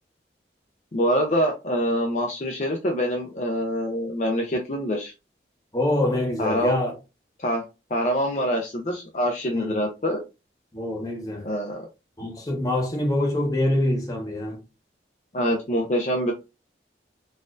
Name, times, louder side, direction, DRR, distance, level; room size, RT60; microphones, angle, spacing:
voice 1, 0.9-5.1 6.4-6.8 7.4-7.6 7.9-10.2 11.4-11.9 15.3-16.3, equal, 40° left, 0.5 m, -25 dB
voice 2, 5.7-6.9 9.5-9.8 10.7-11.5 12.2-14.6, left 1 dB, 20° left, 0.9 m, -25 dB
4.1 x 2.4 x 2.5 m
head